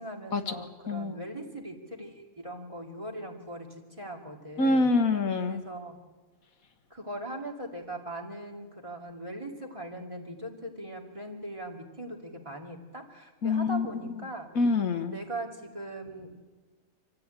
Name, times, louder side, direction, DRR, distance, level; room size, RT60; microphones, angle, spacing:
voice 1, 0.0-4.9 5.5-6.0 6.9-14.5 15.1-16.3, right 1 dB, 20° right, 0 dB, 2.5 m, -40 dB
voice 2, 0.9-1.2 4.6-5.6 13.4-13.9 14.6-15.2, left 3 dB, 85° left, 6 dB, 1.9 m, -25 dB
25.5 x 14.5 x 9.1 m, 1.3 s
omnidirectional pair, 1.4 m